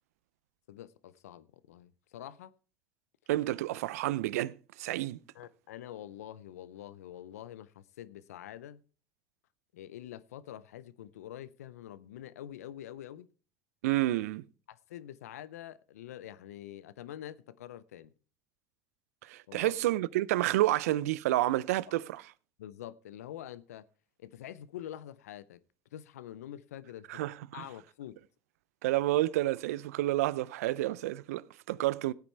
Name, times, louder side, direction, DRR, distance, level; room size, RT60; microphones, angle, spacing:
voice 1, 0.7-2.5 5.3-8.8 9.7-13.3 14.7-18.1 19.5-19.7 22.6-23.9 24.2-25.6 25.9-27.2 27.5-28.2, left 11 dB, 90° left, 0.5 m, -46 dB
voice 2, 3.3-5.2 13.8-14.4 19.2-22.2 27.1-27.6 28.8-32.1, right 16 dB, 85° right, 0.4 m, -30 dB
16.5 x 8.9 x 3.3 m
hypercardioid pair, 70°, 8 cm